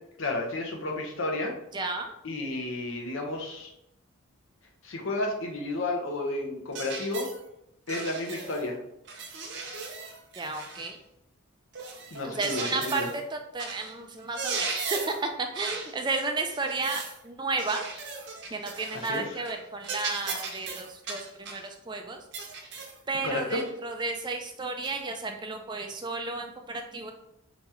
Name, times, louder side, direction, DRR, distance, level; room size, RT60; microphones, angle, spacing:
voice 1, 0.2-1.5 2.2-3.7 4.8-7.3 7.9-8.8 12.1-13.1 18.9-19.4 23.2-23.6, left 2 dB, 65° left, 1 dB, 0.8 m, -32 dB
voice 2, 1.7-2.1 10.4-11.0 12.2-17.9 18.5-22.2 23.1-27.1, right 3 dB, 20° right, 4 dB, 0.3 m, -33 dB
sound 1, 6.7-7.4 7.9-8.7 9.1-11.0 11.7-13.2 13.6-13.9 14.2-15.2 15.5-15.9 16.5-17.2 17.6-19.2 19.5-19.6 19.8-21.7 22.3-23.0 23.6-23.7 24.8-25.0, right 4 dB, 55° right, 0.7 m, -37 dB
4.1 x 3.0 x 3.6 m, 0.82 s
head